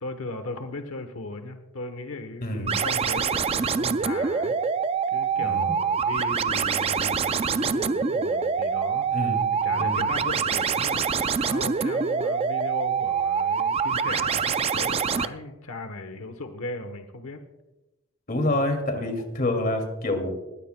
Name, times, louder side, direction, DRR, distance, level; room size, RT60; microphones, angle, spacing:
voice 1, 0.0-4.5 5.1-9.3 9.6-17.4 19.2-19.3, left 2 dB, 80° left, 7 dB, 1.0 m, -37 dB
voice 2, 2.4-2.8 5.4-5.7 9.1-10.1 18.3-20.3, left 1 dB, 45° left, 4 dB, 2.4 m, -27 dB
sound 1, 2.7-15.3, right 6 dB, 30° right, 0.4 m, -25 dB
21.0 x 15.5 x 2.2 m, 1.0 s
head